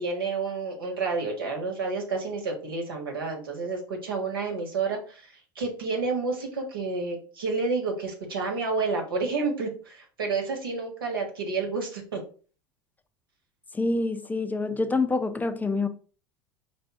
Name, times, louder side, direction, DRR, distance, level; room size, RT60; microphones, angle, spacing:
voice 1, 0.0-12.2, right 4 dB, 90° right, 1.3 m, -30 dB
voice 2, 13.7-15.9, left 3 dB, 15° left, 0.4 m, -26 dB
4.6 x 2.5 x 3.6 m
hypercardioid pair, 85°, 12 cm